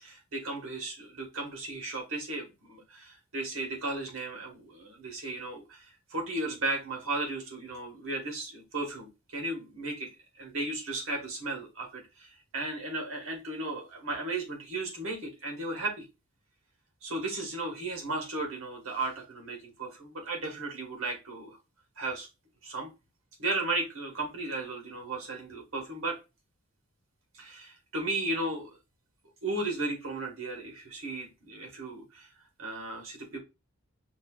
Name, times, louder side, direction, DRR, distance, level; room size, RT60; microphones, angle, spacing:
voice 1, 0.0-10.1 10.4-16.0 17.0-21.6 22.0-22.3 22.6-22.9 23.4-26.2 27.3-28.7 29.4-32.3 32.6-33.4, right 2 dB, 65° right, 0 dB, 1.1 m, -35 dB
5.2 x 2.3 x 2.2 m, 0.26 s
head